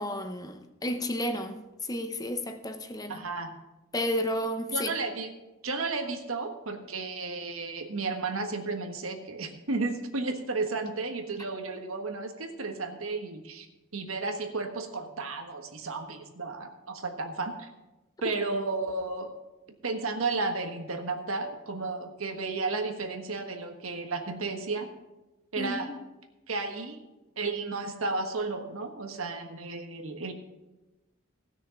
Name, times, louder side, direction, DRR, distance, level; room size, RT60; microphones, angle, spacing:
voice 1, 0.0-1.6 1.9-3.2 3.9-4.9 25.6-25.9, left 1 dB, 20° left, 8 dB, 0.7 m, -32 dB
voice 2, 3.1-3.5 4.7-5.3 5.6-13.7 13.9-17.7 18.2-19.3 19.8-24.9 25.5-25.9 26.5-27.0 27.4-30.3, right 3 dB, 90° right, 5 dB, 1.4 m, -33 dB
16.5 x 6.4 x 5.8 m, 1.0 s
head